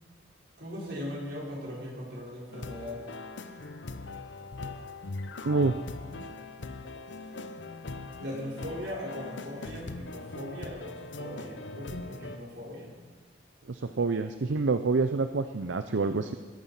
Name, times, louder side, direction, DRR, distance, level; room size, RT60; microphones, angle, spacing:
voice 1, 0.6-3.0 8.2-12.9, equal, 60° right, -4 dB, 5.3 m, -39 dB
sound 1, 2.5-12.4, left 3 dB, 80° left, 0.8 m, -41 dB
voice 2, 5.4-5.8 13.7-16.3, right 3 dB, 80° right, 9 dB, 0.6 m, -27 dB
19.5 x 11.0 x 5.7 m, 1.4 s
head